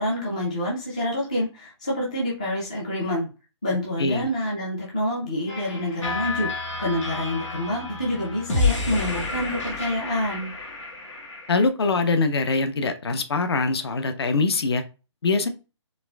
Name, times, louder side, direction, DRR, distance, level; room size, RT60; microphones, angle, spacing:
voice 1, 0.0-3.3 3.6-6.5 6.8-10.5, left 1 dB, 15° left, -4 dB, 0.3 m, -27 dB
sound 1, 5.5-11.7, left 3 dB, 85° left, 1.6 m, -29 dB
voice 2, 11.5-14.8 15.2-15.5, left 3 dB, 55° left, 8 dB, 0.6 m, -23 dB
4.1 x 2.5 x 2.2 m, 0.32 s
hypercardioid pair, 175°, 15 cm